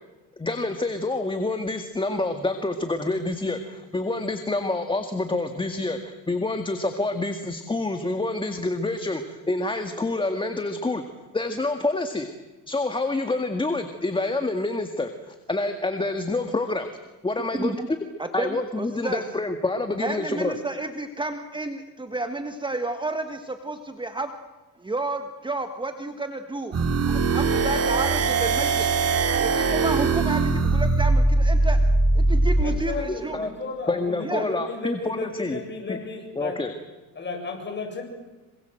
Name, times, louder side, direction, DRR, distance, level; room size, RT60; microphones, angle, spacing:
voice 1, 0.4-11.0 11.3-12.3 12.7-16.9 17.2-17.7 18.3-20.6 33.3-33.5 33.9-35.6 35.9-36.0 36.4-36.7, left 2 dB, 15° left, 7 dB, 1.9 m, -27 dB
voice 2, 17.5-17.9 18.2-19.2 20.0-24.4 24.8-26.8 27.1-28.9 29.4-31.8 32.1-33.4 34.2-34.5, right 2 dB, 15° right, 7 dB, 1.5 m, -31 dB
sound 1, 26.7-32.7, right 3 dB, 40° right, 3.1 m, -21 dB
voice 3, 32.6-36.6 37.2-38.0, left 4 dB, 30° left, 3 dB, 7.6 m, -34 dB
26.5 x 24.5 x 7.8 m, 1.1 s
cardioid pair, 105°, 37 cm